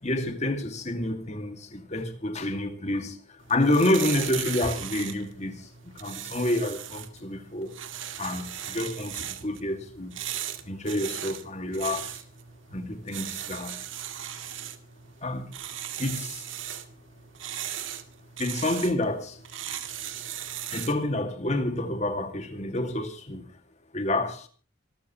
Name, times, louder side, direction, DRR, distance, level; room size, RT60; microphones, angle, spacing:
voice 1, 0.0-7.8 8.2-10.2 10.6-12.2 12.7-13.8 15.2-15.5 16.0-16.5 18.4-19.4 20.7-23.5 23.9-24.5, left 1 dB, 35° left, 2.4 m, -29 dB
sound 1, 3.4-21.0, right 10 dB, 75° right, 1.9 m, -38 dB
26.0 x 13.0 x 3.2 m
head